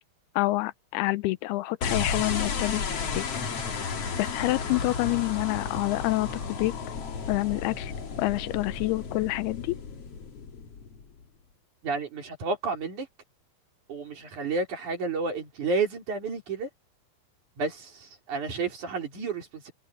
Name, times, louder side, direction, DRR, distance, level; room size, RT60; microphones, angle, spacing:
voice 1, 0.4-2.8 3.1-3.2 4.2-6.7 7.3-7.9 8.2-9.8, left 20 dB, 85° left, 2.6 m, -27 dB
sound 1, 1.8-11.2, left 5 dB, 45° left, 2.8 m, -33 dB
voice 2, 11.8-13.1 13.9-16.7 17.6-19.7, right 4 dB, 50° right, 5.2 m, -31 dB
omnidirectional pair, 4.7 m